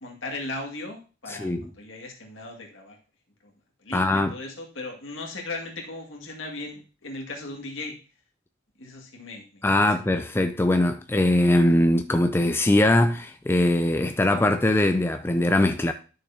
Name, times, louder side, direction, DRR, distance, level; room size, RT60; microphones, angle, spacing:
voice 1, 0.0-3.0 3.4-3.5 3.8-8.0 8.8-9.9, left 2 dB, 70° left, 2.0 m, -37 dB
voice 2, 1.3-1.7 3.9-4.3 9.6-15.9, left 1 dB, 10° left, 0.4 m, -21 dB
11.5 x 6.5 x 2.8 m
head